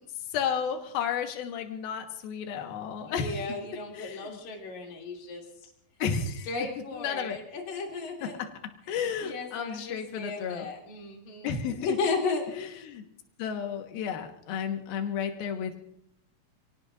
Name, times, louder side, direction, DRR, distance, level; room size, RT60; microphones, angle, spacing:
voice 1, 0.3-3.3 4.0-4.4 6.0-6.5 6.9-7.4 8.9-10.7 11.4-11.8 12.5-13.0 13.4-15.8, left 7 dB, 75° left, 4 dB, 3.2 m, -32 dB
voice 2, 3.0-5.7 6.5-8.4 8.9-12.5, left 4 dB, 50° left, -1 dB, 4.0 m, -34 dB
29.5 x 18.0 x 2.6 m, 0.73 s
omnidirectional pair, 4.5 m